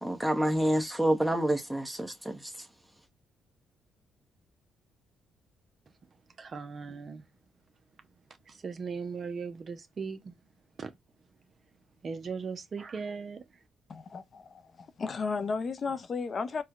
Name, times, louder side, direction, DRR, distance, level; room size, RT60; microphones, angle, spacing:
voice 1, 0.0-2.4, right 1 dB, 5° right, 0.8 m, -28 dB
voice 2, 6.4-7.2 8.6-10.3 10.8-10.9 12.0-13.4, right 5 dB, 45° right, 0.5 m, -38 dB
voice 3, 13.9-16.6, left 4 dB, 45° left, 0.4 m, -34 dB
4.3 x 2.1 x 2.3 m
cardioid pair, 90°, 0 cm